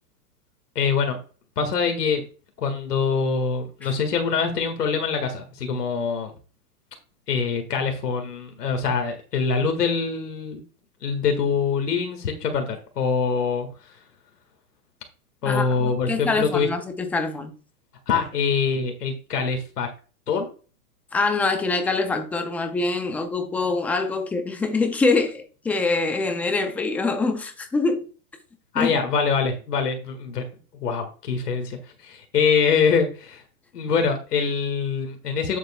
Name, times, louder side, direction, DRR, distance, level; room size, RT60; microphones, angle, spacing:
voice 1, 0.8-1.2 1.6-2.2 2.6-6.3 7.3-10.6 11.0-13.9 15.4-16.7 18.1-19.9 20.3-20.5 28.7-30.4 30.8-33.4 33.7-35.6, left 5 dB, 90° left, 1.9 m, -24 dB
voice 2, 15.5-17.5 21.1-28.0 28.8-29.0, left 3 dB, 5° left, 0.4 m, -24 dB
10.0 x 7.4 x 2.3 m
hypercardioid pair, 130°, 46 cm